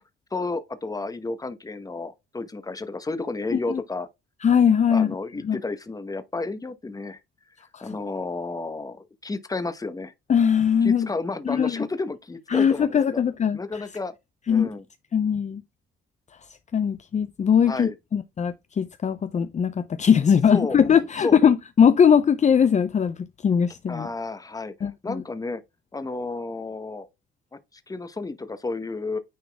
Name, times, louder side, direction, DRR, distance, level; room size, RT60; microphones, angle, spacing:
voice 1, 0.3-4.1 4.9-7.2 7.8-10.1 10.8-13.2 13.5-14.1 14.5-14.8 17.7-17.9 20.5-20.8 21.2-21.4 23.9-25.6 25.9-27.1 27.7-29.2, left 3 dB, 20° left, 1.0 m, -31 dB
voice 2, 4.4-5.1 5.4-5.6 7.7-7.9 10.3-11.1 11.5-11.8 12.5-13.8 14.5-14.7 15.1-15.6 16.7-23.2 23.4-24.1 24.8-25.2, left 7 dB, 35° left, 0.6 m, -20 dB
9.4 x 3.9 x 3.5 m
cardioid pair, 90°, 20 cm